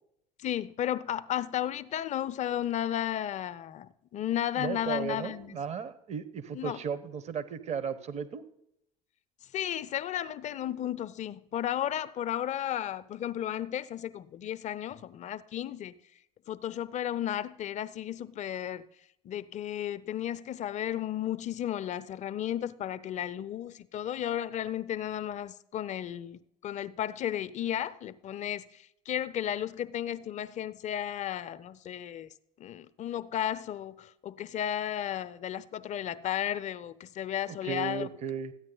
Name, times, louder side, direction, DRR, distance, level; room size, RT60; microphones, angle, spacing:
voice 1, 0.4-5.6 6.5-6.8 9.5-15.9 16.5-18.8 19.2-32.3 32.6-38.1, left 11 dB, 40° left, 0.5 m, -34 dB
voice 2, 4.6-8.4 37.6-38.5, right 7 dB, 35° right, 0.9 m, -35 dB
14.0 x 9.0 x 3.9 m
hypercardioid pair, 70°, 19 cm